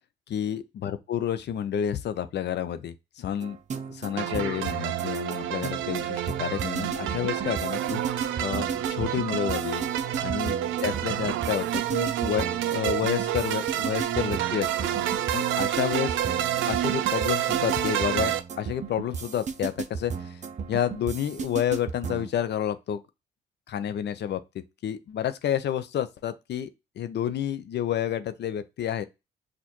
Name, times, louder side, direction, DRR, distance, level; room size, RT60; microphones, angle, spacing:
voice 1, 0.3-3.6 3.9-9.9 10.2-10.5 10.8-14.9 15.3-16.2 16.6-20.4 20.7-23.0 23.7-24.4 24.8-26.7 27.0-29.0, left 10 dB, 60° left, 0.6 m, -30 dB
sound 1, 3.4-22.3, right 6 dB, 35° right, 0.6 m, -35 dB
sound 2, 4.2-18.4, right 12 dB, 85° right, 0.5 m, -28 dB
6.4 x 2.5 x 2.9 m
cardioid pair, 90°, 20 cm